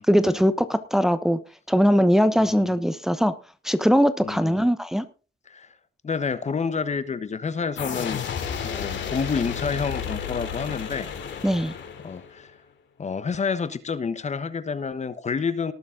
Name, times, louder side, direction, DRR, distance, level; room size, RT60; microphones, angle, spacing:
voice 1, 0.0-1.4 1.7-3.3 3.6-5.1 11.4-11.7, equal, ahead, 1.0 m, -20 dB
voice 2, 2.4-2.7 4.2-4.7 5.5-5.7 6.0-8.2 8.6-11.1 12.0-12.5 13.0-15.7, left 5 dB, 35° left, 1.1 m, -29 dB
sound 1, 7.8-12.4, left 7 dB, 65° left, 3.0 m, -32 dB
18.5 x 7.1 x 3.8 m
cardioid pair, 90°, 20 cm